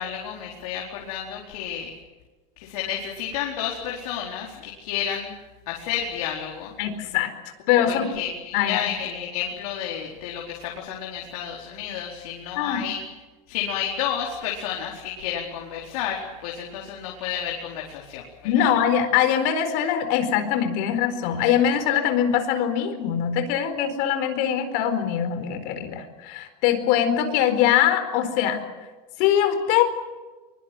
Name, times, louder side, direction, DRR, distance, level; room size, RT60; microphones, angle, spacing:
voice 1, 0.0-1.9 2.6-5.3 5.7-6.7 7.8-13.0 13.5-18.2 18.6-18.7, left 9 dB, 85° left, -1 dB, 4.5 m, -31 dB
voice 2, 6.8-7.3 7.7-8.1 8.5-8.8 12.5-12.8 18.4-28.6 29.2-29.8, left 9 dB, 55° left, 8 dB, 4.4 m, -22 dB
23.5 x 23.5 x 7.9 m, 1.3 s
supercardioid pair, 165°, 19 cm